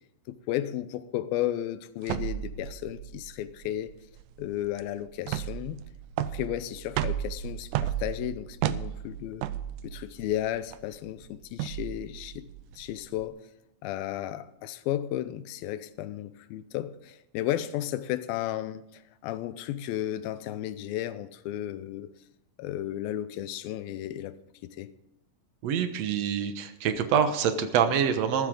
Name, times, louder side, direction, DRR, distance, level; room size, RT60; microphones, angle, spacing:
voice 1, 0.3-3.9 4.4-5.8 6.2-9.5 9.8-12.5 12.8-13.4 13.8-22.1 22.6-24.4 24.6-24.9, left 12 dB, 90° left, 2.6 m, -34 dB
sound 1, 2.0-13.2, right 12 dB, 80° right, 1.9 m, -34 dB
voice 2, 25.6-28.5, right 7 dB, 65° right, 1.8 m, -26 dB
14.5 x 13.5 x 3.8 m
omnidirectional pair, 4.1 m